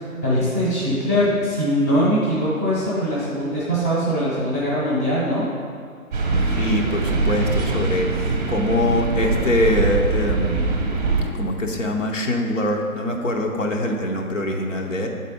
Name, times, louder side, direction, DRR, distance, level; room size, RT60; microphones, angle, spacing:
voice 1, 0.0-5.5, equal, 10° left, -8 dB, 0.7 m, -22 dB
sound 1, 6.1-11.2, right 3 dB, 30° right, 0.8 m, -22 dB
voice 2, 6.5-10.7 11.3-15.1, left 1 dB, 60° left, 1 dB, 0.8 m, -23 dB
6.7 x 4.1 x 5.1 m, 2.2 s
figure-of-eight pair, 140°, 44 cm